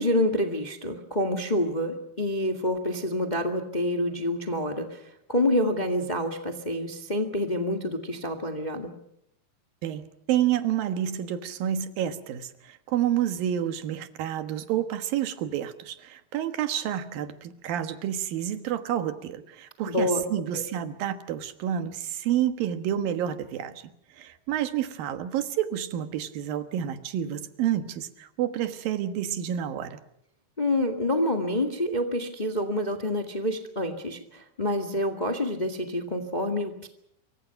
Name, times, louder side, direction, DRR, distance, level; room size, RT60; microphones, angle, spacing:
voice 1, 0.0-8.9 19.8-20.2 20.5-20.6 30.6-36.9, left 1 dB, 20° left, 5 dB, 1.2 m, -27 dB
voice 2, 9.8-23.7 24.2-30.0, right 10 dB, 80° right, 10 dB, 3.2 m, -29 dB
26.5 x 24.0 x 5.9 m, 0.77 s
omnidirectional pair, 4.0 m